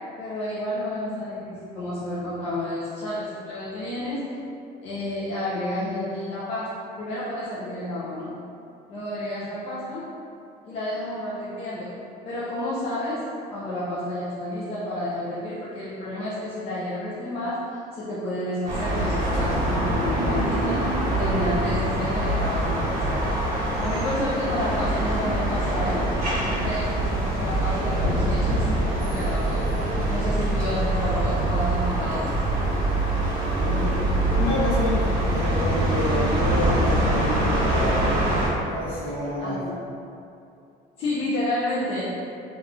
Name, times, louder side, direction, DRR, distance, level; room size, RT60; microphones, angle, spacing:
voice 1, 0.0-4.3 4.8-8.4 8.9-10.1 10.6-12.0 12.3-26.1 26.4-32.3 39.4-39.8 41.0-42.1, left 1 dB, 35° left, -9 dB, 0.5 m, -30 dB
sound 1, 18.7-38.5, right 1 dB, 50° right, 1.3 m, -24 dB
voice 2, 33.6-38.1 38.7-39.6, left 1 dB, 55° left, -8 dB, 1.1 m, -29 dB
3.3 x 2.3 x 2.4 m, 2.7 s
cardioid pair, 135°, 17 cm